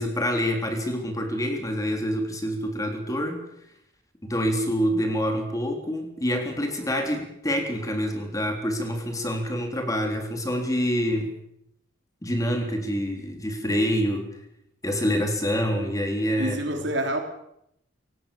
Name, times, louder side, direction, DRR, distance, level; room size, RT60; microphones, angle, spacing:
voice 1, 0.0-3.4 4.2-11.3 12.2-14.3 14.8-16.6, equal, 15° left, 3.8 m, -26 dB
voice 2, 16.4-17.2, right 1 dB, 65° right, 4.1 m, -27 dB
27.5 x 17.5 x 7.1 m
head